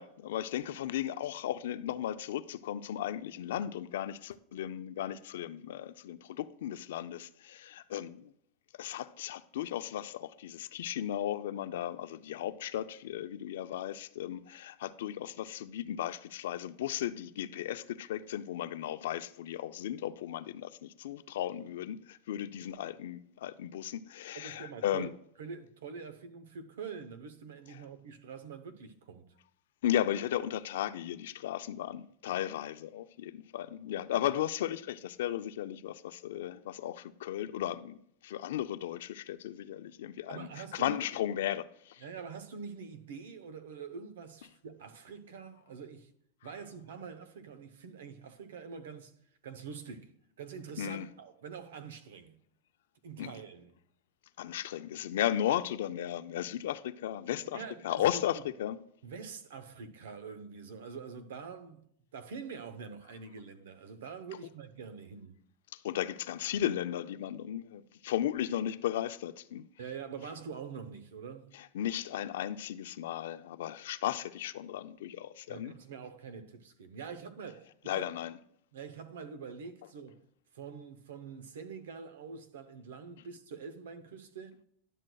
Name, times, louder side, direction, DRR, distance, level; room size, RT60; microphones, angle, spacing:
voice 1, 0.0-8.3 8.8-25.1 29.8-38.0 38.2-42.0 50.8-51.1 53.2-53.3 54.4-58.8 65.8-69.6 71.7-75.7 77.9-78.4, left 11 dB, 80° left, 0.4 m, -35 dB
voice 2, 24.3-25.1 25.4-29.3 40.3-41.0 42.0-46.1 46.4-49.1 49.4-52.4 53.0-53.8 57.5-58.5 59.0-65.4 69.8-71.6 75.5-78.1 78.7-80.2 80.5-84.6, right 6 dB, 90° right, 0.7 m, -45 dB
10.5 x 6.3 x 2.3 m
supercardioid pair, 135°, 0 cm